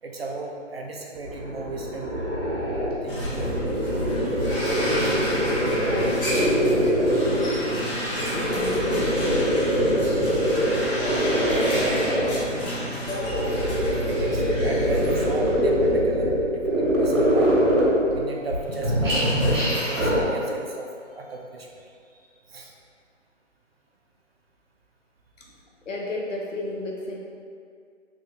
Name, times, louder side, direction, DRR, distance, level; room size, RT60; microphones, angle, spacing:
voice 1, 0.0-2.2 3.0-3.7 4.2-4.7 4.9-5.1 12.2-12.4 14.1-17.6 18.1-19.3 19.8-21.9 22.2-22.7 25.4-25.5, right 3 dB, 50° right, 0 dB, 0.6 m, -35 dB
sound 1, 1.2-7.7 8.1-12.5 13.1-18.2 18.5-20.2, equal, 85° right, 1.5 m, -23 dB
sound 2, 3.1-16.1 16.5-16.7 17.5-17.6 18.7-20.1, equal, 45° left, 1.1 m, -31 dB
voice 2, 5.8-9.5 13.1-13.8 25.4-25.5 25.8-27.2, left 1 dB, 75° left, -1 dB, 0.9 m, -34 dB
3.6 x 2.6 x 3.8 m, 2.3 s
figure-of-eight pair, 160°, 38 cm